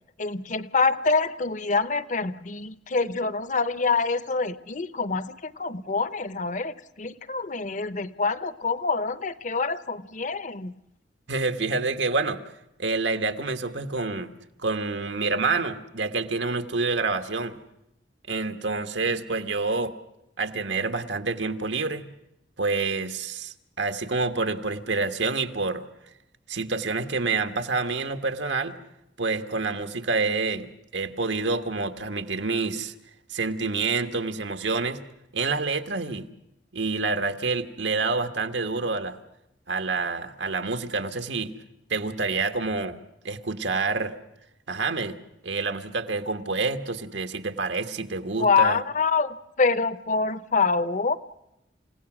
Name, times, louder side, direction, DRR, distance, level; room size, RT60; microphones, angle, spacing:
voice 1, 0.2-10.7 48.4-51.2, left 4 dB, 40° left, 15 dB, 0.8 m, -26 dB
voice 2, 11.3-12.4 12.8-14.3 14.6-17.6 18.3-19.9 20.4-22.1 22.6-25.8 26.5-28.8 29.2-32.9 33.3-35.0 35.3-36.3 36.7-39.2 39.7-41.5 41.9-43.0 43.2-44.1 44.7-45.2 45.4-48.8, right 3 dB, 80° right, 8 dB, 1.4 m, -27 dB
29.0 x 17.0 x 6.2 m, 0.86 s
head